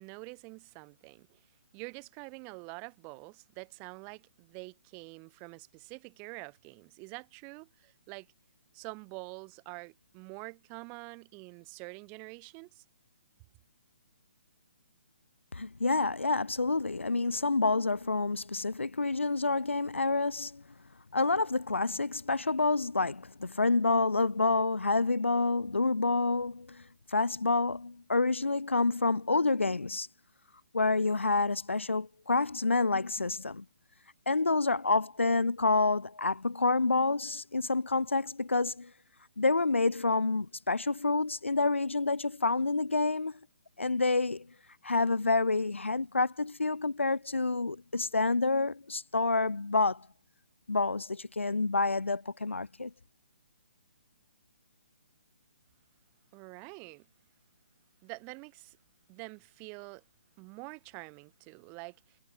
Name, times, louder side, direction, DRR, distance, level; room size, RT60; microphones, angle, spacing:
voice 1, 0.0-8.3 8.7-12.8 56.3-57.1 58.0-58.8 59.1-60.0 60.4-62.2, right 33 dB, 25° right, 7.3 m, -46 dB
voice 2, 15.5-20.6 21.1-26.8 27.1-30.1 30.7-33.6 34.3-38.9 39.4-43.4 43.8-44.5 44.8-50.1 50.7-52.9, left 3 dB, 80° left, 0.8 m, -28 dB
figure-of-eight pair, 135°, 6 cm